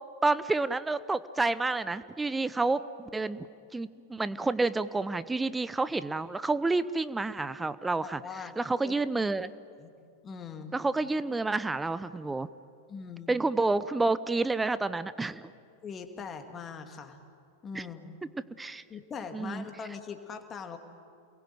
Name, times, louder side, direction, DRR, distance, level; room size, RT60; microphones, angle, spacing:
voice 1, 0.2-3.5 3.7-8.2 8.6-9.5 10.7-12.5 13.3-15.5 17.7-17.8 18.6-18.8 19.3-19.6, right 3 dB, 10° right, 16 dB, 0.7 m, -29 dB
voice 2, 7.9-8.6 8.8-9.0 9.8-9.9 10.2-10.8 12.9-13.3 15.8-17.2 17.6-18.2 18.9-20.8, left 5 dB, 25° left, 6 dB, 2.4 m, -41 dB
29.0 x 22.0 x 9.3 m, 2.4 s
figure-of-eight pair, 90°, 0 cm